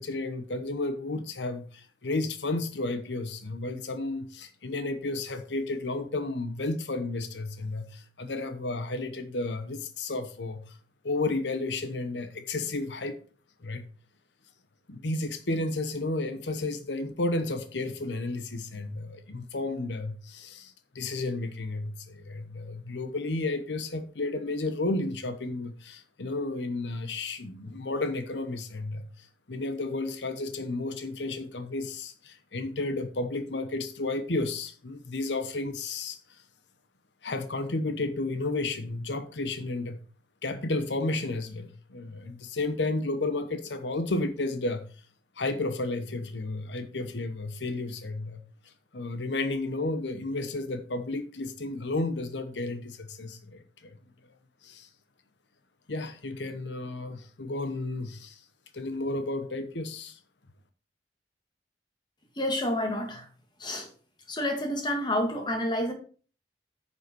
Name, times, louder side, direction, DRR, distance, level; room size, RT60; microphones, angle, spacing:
voice 1, 0.0-10.8 11.0-13.2 13.6-13.8 14.9-36.4 37.2-40.0 40.4-44.9 45.4-54.0 54.6-54.9 55.9-58.4 58.7-60.2, left 2 dB, 90° left, 1.0 m, -32 dB
voice 2, 62.4-63.3 63.6-63.9 64.3-65.9, left 1 dB, 25° left, 2.1 m, -29 dB
9.8 x 5.5 x 4.6 m
head